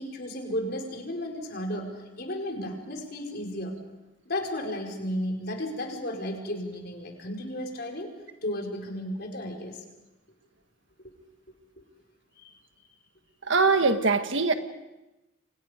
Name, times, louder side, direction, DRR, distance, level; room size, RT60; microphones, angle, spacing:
voice 1, 0.0-1.9 2.2-3.7 4.2-8.1 8.4-9.8 11.0-11.1 11.8-11.9 12.4-12.5, left 1 dB, 50° left, 2 dB, 4.9 m, -33 dB
voice 2, 13.5-14.5, right 4 dB, 70° right, 8 dB, 1.6 m, -22 dB
29.5 x 26.5 x 5.2 m, 0.99 s
head